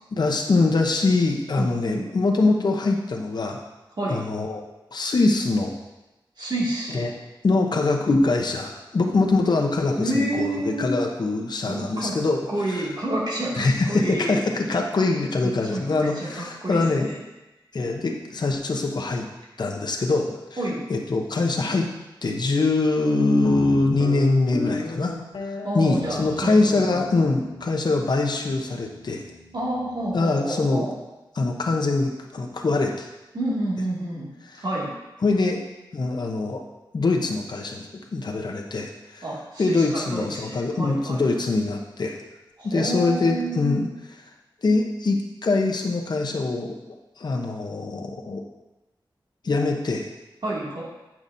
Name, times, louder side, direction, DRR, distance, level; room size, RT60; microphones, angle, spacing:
voice 1, 0.1-3.6 4.1-4.6 4.9-5.7 6.9-7.1 7.4-12.4 12.7-12.9 13.6-17.1 17.7-19.3 19.6-20.3 20.9-21.8 22.2-25.1 25.4-29.2 30.1-30.9 31.3-33.1 34.5-34.6 35.2-35.6 35.9-36.6 36.9-39.2 39.6-42.1 42.6-43.9 44.6-46.8 47.2-48.4 49.4-50.1, left 3 dB, 55° left, 1 dB, 0.9 m, -23 dB
voice 2, 1.6-2.1 4.0-4.2 6.4-7.1 10.0-11.0 11.6-12.2 12.5-14.3 15.4-15.9 16.1-17.2 20.6-20.8 25.6-27.0 29.5-30.9 33.3-34.3 34.6-34.9 39.2-41.2 42.6-43.8 50.4-50.8, right 1 dB, 60° right, -6 dB, 2.3 m, -29 dB
Guitar, 23.4-30.1, left 3 dB, 85° left, 1.0 m, -36 dB
8.5 x 5.9 x 2.7 m, 1.0 s
wide cardioid pair, 70°, 8 cm